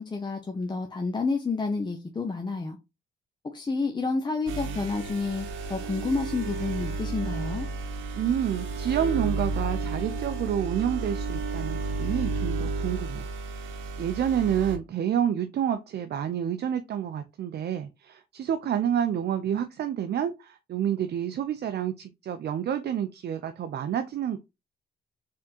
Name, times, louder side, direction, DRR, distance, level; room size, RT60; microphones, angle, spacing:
voice 1, 0.0-2.8 3.5-7.7, left 4 dB, 20° left, 0.7 m, -30 dB
sound 1, 4.5-14.8, right 3 dB, 90° right, 0.8 m, -32 dB
voice 2, 8.1-13.3 13.6-24.4, right 9 dB, 55° right, 0.5 m, -29 dB
4.2 x 3.6 x 2.7 m
cardioid pair, 90°, 20 cm